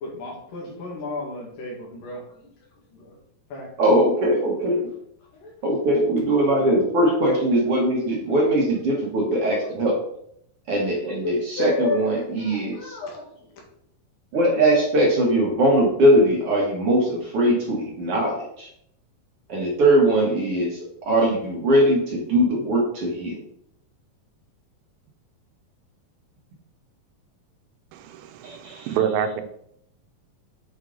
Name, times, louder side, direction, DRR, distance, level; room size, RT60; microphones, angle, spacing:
voice 1, 0.0-2.5 2.9-3.2 3.5-3.7 5.3-5.5 11.2-13.5, left 2 dB, 75° left, -1 dB, 3.4 m, -33 dB
voice 2, 3.8-4.9 5.6-10.0 10.7-13.0 14.3-18.7 19.5-23.4 28.4-28.9, right 1 dB, 55° right, -2 dB, 1.8 m, -21 dB
voice 3, 27.9-29.4, right 8 dB, 90° right, 8 dB, 2.5 m, -27 dB
8.1 x 4.6 x 3.8 m, 0.71 s
omnidirectional pair, 4.0 m